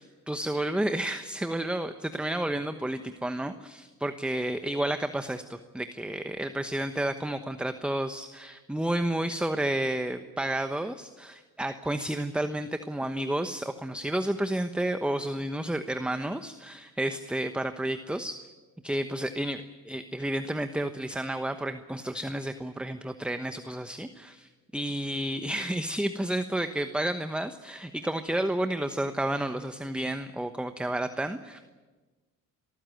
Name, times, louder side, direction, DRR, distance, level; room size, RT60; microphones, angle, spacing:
voice 1, 0.0-18.4 18.8-31.6, right 1 dB, 5° right, 9 dB, 1.1 m, -31 dB
25.0 x 14.5 x 9.3 m, 1.3 s
cardioid pair, 75°, 33 cm